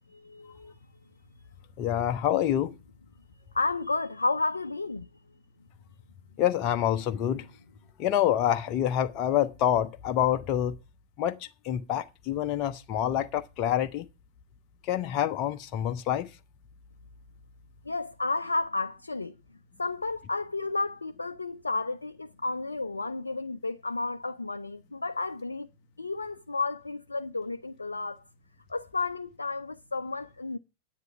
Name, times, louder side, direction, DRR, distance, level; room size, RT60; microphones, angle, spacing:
voice 1, 0.1-0.7 3.5-5.1 17.9-19.4 19.8-25.7 26.0-28.2 28.7-30.6, left 3 dB, 80° left, 0.5 m, -32 dB
voice 2, 1.8-2.7 6.4-7.5 8.0-10.8 11.2-14.1 14.8-16.3, left 11 dB, 40° left, 0.8 m, -27 dB
9.6 x 9.3 x 4.5 m
figure-of-eight pair, 95°, 0 cm